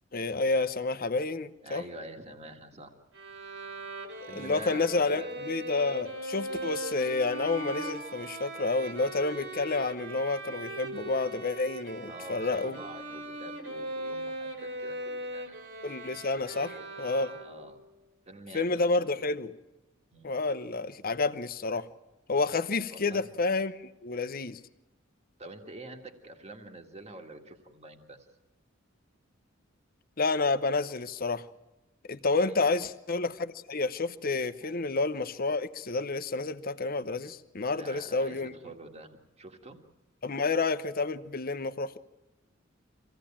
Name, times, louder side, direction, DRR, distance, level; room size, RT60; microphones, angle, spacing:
voice 1, 0.1-1.8 4.3-12.8 15.8-17.3 18.5-19.5 20.2-21.9 22.3-24.6 30.2-31.4 32.1-38.5 40.2-42.0, left 3 dB, 45° left, 0.9 m, -29 dB
voice 2, 1.6-2.9 4.3-5.3 12.1-15.6 16.5-17.1 17.4-17.8 18.3-19.3 20.1-20.3 22.9-23.3 25.4-28.3 32.3-32.7 34.6-34.8 37.7-39.8, right 2 dB, 35° right, 1.9 m, -46 dB
Bowed string instrument, 3.1-17.8, right 1 dB, 70° right, 3.1 m, -40 dB
25.5 x 16.5 x 8.8 m
head